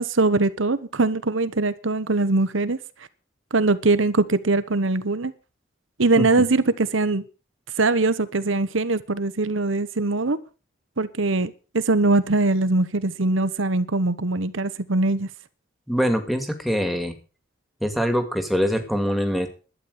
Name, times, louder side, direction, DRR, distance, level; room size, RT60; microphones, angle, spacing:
voice 1, 0.0-2.8 3.5-5.3 6.0-7.2 7.8-10.4 11.0-15.3, right 3 dB, 80° right, 1.1 m, -22 dB
voice 2, 15.9-17.1 17.8-19.5, equal, ahead, 2.1 m, -23 dB
12.0 x 9.4 x 6.6 m
head